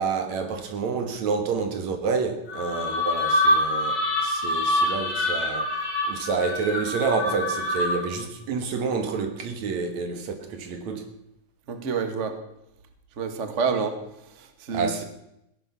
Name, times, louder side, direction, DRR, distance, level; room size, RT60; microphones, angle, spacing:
voice 1, 0.0-5.8 6.1-11.1 14.7-15.0, right 5 dB, 65° right, 2.8 m, -28 dB
sound 1, 2.5-8.2, left 1 dB, 30° left, 3.4 m, -25 dB
voice 2, 11.7-12.4 13.2-14.0 14.2-15.0, right 5 dB, 35° right, 1.2 m, -28 dB
17.0 x 11.0 x 6.9 m
omnidirectional pair, 3.6 m